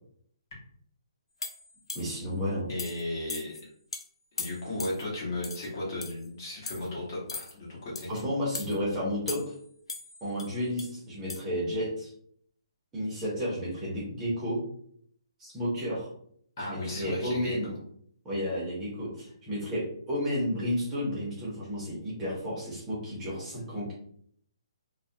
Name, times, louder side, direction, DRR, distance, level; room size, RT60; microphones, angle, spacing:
sound 1, 1.4-2.2 2.8-3.0 3.3-3.6 3.9-4.0 4.4-5.0 5.4-5.7 6.0-6.3 6.7-6.9 7.3-7.5 7.9-8.2 8.5-8.7 9.3-9.6 9.9-10.9 11.3-11.4, left 4 dB, 80° left, 0.4 m, -38 dB
voice 1, 1.9-2.7 8.1-9.5 10.2-12.1 12.9-14.6 15.4-16.1 16.6-17.7 18.2-23.9, equal, 10° right, -7 dB, 0.6 m, -32 dB
voice 2, 2.7-3.5 4.4-8.1 16.6-17.8, left 1 dB, 40° left, -4 dB, 0.9 m, -35 dB
2.2 x 2.1 x 2.6 m, 0.63 s
hypercardioid pair, 165°, 3 cm